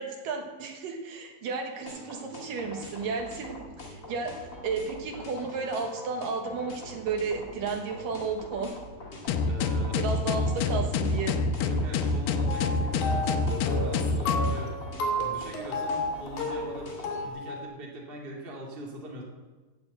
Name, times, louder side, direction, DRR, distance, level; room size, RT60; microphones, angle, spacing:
voice 1, 0.0-3.6 3.9-8.8 10.0-11.4, right 4 dB, 70° right, 3 dB, 2.7 m, -33 dB
sound 1, 1.9-17.3, left 1 dB, 25° left, 2.0 m, -44 dB
sound 2, 9.3-14.6, left 3 dB, 90° left, 2.7 m, -26 dB
voice 2, 9.5-10.0 11.6-14.7 15.2-19.2, right 2 dB, 20° right, -1 dB, 1.6 m, -42 dB
sound 3, 12.5-17.6, left 1 dB, 70° left, 4.0 m, -32 dB
15.0 x 7.1 x 7.8 m, 1.3 s
omnidirectional pair, 4.3 m